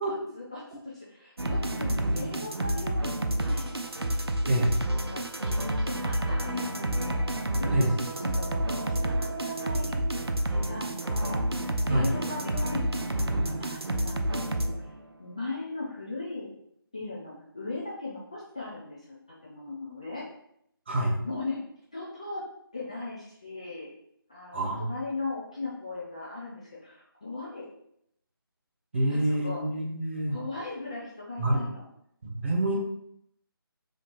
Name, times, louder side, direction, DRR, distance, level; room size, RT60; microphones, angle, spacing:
voice 1, 0.3-3.9 5.1-7.2 7.6-11.4 11.9-14.9 15.2-16.5 16.9-19.2 19.4-20.3 21.2-21.6 21.9-22.4 22.7-23.9 24.3-27.7 29.1-29.6 30.3-31.8 32.7-32.8, left 3 dB, 15° left, -7 dB, 0.3 m, -38 dB
Cyber Race, 1.4-15.0, right 1 dB, 90° right, 0.5 m, -29 dB
voice 2, 24.5-24.9 28.9-30.3 31.4-31.6 32.2-32.8, right 1 dB, 30° right, 0 dB, 0.6 m, -26 dB
3.0 x 2.8 x 4.0 m, 0.74 s
figure-of-eight pair, 155°, 13 cm